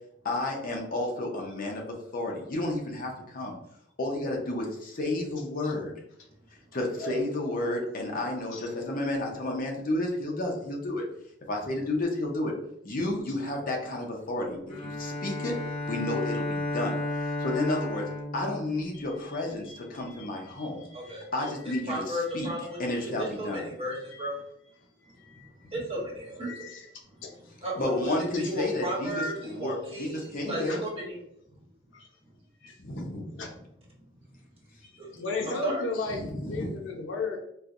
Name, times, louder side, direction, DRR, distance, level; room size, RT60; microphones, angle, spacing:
voice 1, 0.2-3.6 4.0-5.9 6.7-11.0 11.5-12.5 12.8-15.6 15.9-18.1 18.3-20.9 21.3-22.5 22.8-23.7 27.8-30.8 32.8-33.3 36.1-36.8, left 1 dB, 50° left, 0 dB, 0.7 m, -31 dB
Bowed string instrument, 14.7-19.5, left 1 dB, 30° left, 1.2 m, -33 dB
voice 2, 18.9-21.8 22.3-22.5 22.8-23.0 23.9-24.3 25.0-25.7 26.5-26.9 27.2-27.3 30.7-30.8 31.9-32.1 32.6-32.7 33.4-33.5 34.8-37.4, left 3 dB, 80° left, 2 dB, 0.7 m, -37 dB
voice 3, 20.9-21.2 21.9-24.4 25.7-26.5 27.6-28.1 28.4-31.2 35.0-35.1 35.4-35.9, equal, 30° right, -4 dB, 1.1 m, -34 dB
4.3 x 2.2 x 2.5 m, 0.74 s
head